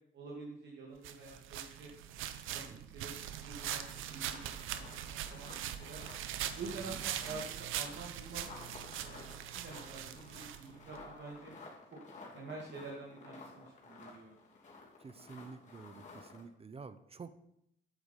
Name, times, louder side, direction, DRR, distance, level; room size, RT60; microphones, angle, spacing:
voice 1, 0.1-1.9 2.5-4.8 5.3-6.0 6.6-8.4 9.0-11.5 12.3-14.3, right 3 dB, 60° right, -3 dB, 2.2 m, -47 dB
sound 1, 1.0-11.0, right 11 dB, 90° right, 0.7 m, -42 dB
voice 2, 2.5-2.9 6.8-7.0 15.0-17.3, right 5 dB, 30° right, 13 dB, 0.7 m, -50 dB
sound 2, 3.1-16.4, left 3 dB, 40° left, 2.9 m, -54 dB
8.2 x 7.9 x 5.4 m, 0.76 s
cardioid pair, 90°, 20 cm